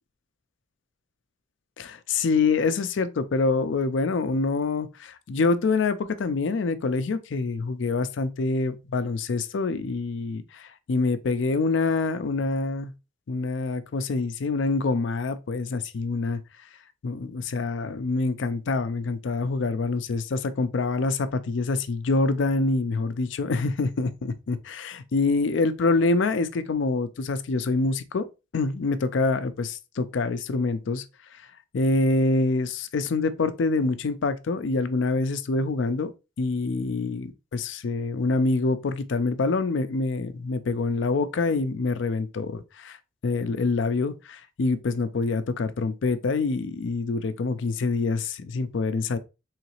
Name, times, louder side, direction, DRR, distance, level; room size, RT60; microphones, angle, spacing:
voice 1, 1.8-12.9 13.3-16.4 17.0-28.2 28.5-31.0 31.7-36.1 36.4-43.0 43.2-49.2, left 3 dB, 70° left, 0.4 m, -26 dB
3.9 x 3.2 x 3.0 m
head